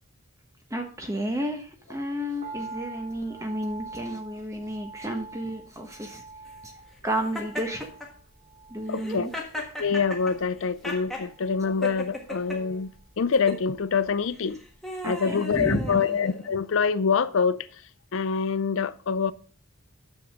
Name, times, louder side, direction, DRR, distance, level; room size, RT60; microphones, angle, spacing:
voice 1, 0.7-6.2 6.6-6.7 7.0-7.9 8.7-9.3 15.0-16.0, right 1 dB, 15° right, 1.1 m, -32 dB
sound 1, 2.4-14.7 15.0-15.1, right 3 dB, 30° right, 4.0 m, -46 dB
Laughter, 7.3-8.1 8.9-11.3 11.8-12.6 13.3-13.6 14.4-16.6, left 1 dB, ahead, 1.5 m, -36 dB
voice 2, 8.9-9.3 9.8-12.9 13.2-14.6 15.0-17.7 18.1-19.3, left 5 dB, 65° left, 0.5 m, -25 dB
9.4 x 7.1 x 3.6 m
head